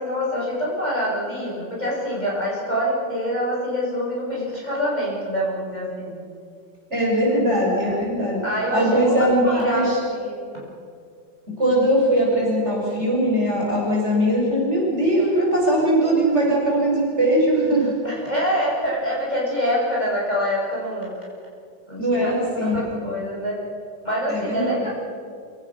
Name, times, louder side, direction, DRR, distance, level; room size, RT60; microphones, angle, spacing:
voice 1, 0.0-6.1 7.2-8.0 8.4-9.9 10.2-10.3 18.0-21.1 21.9-23.6 24.0-24.9, equal, 20° left, -6 dB, 7.1 m, -26 dB
voice 2, 6.9-8.4 8.7-10.0 11.6-17.9 22.0-22.8 24.3-24.9, right 1 dB, 30° right, -4 dB, 6.6 m, -20 dB
27.5 x 17.5 x 6.3 m, 2.3 s
omnidirectional pair, 2.2 m